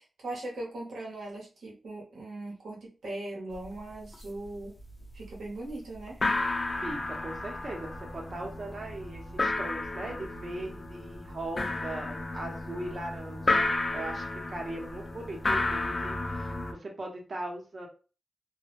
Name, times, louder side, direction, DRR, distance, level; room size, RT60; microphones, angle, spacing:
voice 1, 0.0-4.8 5.1-6.2, right 2 dB, 85° right, -4 dB, 0.8 m, -39 dB
sound 1, 3.5-3.7 3.9-4.5 4.8-5.4 5.7-5.8 6.1-16.7, left 2 dB, 40° left, 0.4 m, -32 dB
voice 2, 6.8-17.9, right 1 dB, 55° right, 0 dB, 0.7 m, -39 dB
2.1 x 2.0 x 2.9 m, 0.35 s
cardioid pair, 70°, 0 cm